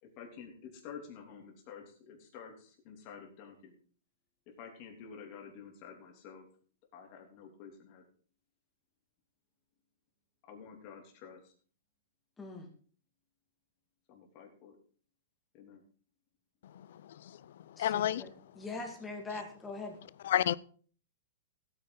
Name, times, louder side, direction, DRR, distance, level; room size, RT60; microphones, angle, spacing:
voice 1, 0.0-3.8 4.5-6.5 6.9-8.0 10.4-11.5 14.1-14.8 15.5-15.8, left 6 dB, 35° left, 1 dB, 3.2 m, -50 dB
voice 2, 12.4-12.7 17.8-18.3 18.6-20.0, left 3 dB, 10° left, 2 dB, 2.2 m, -42 dB
voice 3, 17.0-17.4 17.8-18.2 20.2-20.6, left 11 dB, 60° left, 20 dB, 0.6 m, -30 dB
16.5 x 9.0 x 4.0 m, 0.44 s
hypercardioid pair, 165°, 0 cm